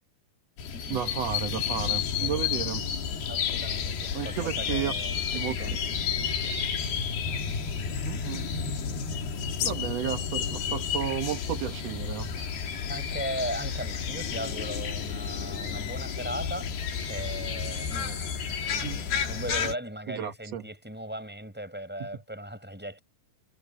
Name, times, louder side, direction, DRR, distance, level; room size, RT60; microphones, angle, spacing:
sound 1, 0.6-19.7, left 7 dB, 70° left, 4.5 m, -31 dB
voice 1, 0.9-2.9 4.1-4.9 5.3-5.6 6.2-6.3 8.1-8.4 9.6-12.4 18.8-19.0 20.1-20.6, right 10 dB, 80° right, 1.4 m, -33 dB
voice 2, 3.3-6.6 12.9-16.7 17.1-23.0, right 1 dB, ahead, 6.8 m, -38 dB
omnidirectional pair, 4.7 m